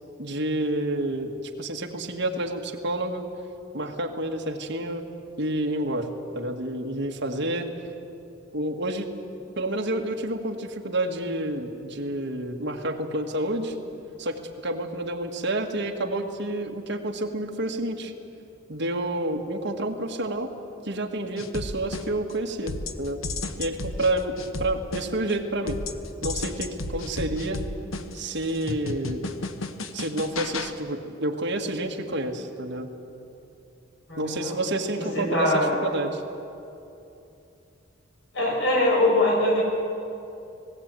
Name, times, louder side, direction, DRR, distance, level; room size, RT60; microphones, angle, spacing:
voice 1, 0.2-3.2 3.7-5.0 5.4-7.7 8.5-9.1 9.6-13.8 14.2-18.1 18.7-20.5 20.8-23.2 23.6-25.8 26.2-27.6 28.1-29.3 29.9-32.9 34.2-36.2, right 1 dB, 60° right, 2 dB, 1.8 m, -29 dB
sound 1, 21.4-22.3 22.7-25.3 25.7-30.7, left 2 dB, 85° left, 1.1 m, -33 dB
voice 2, 34.1-34.6 35.0-35.7 38.3-39.6, left 1 dB, 65° left, -1 dB, 5.6 m, -22 dB
19.0 x 17.5 x 9.1 m, 2.8 s
head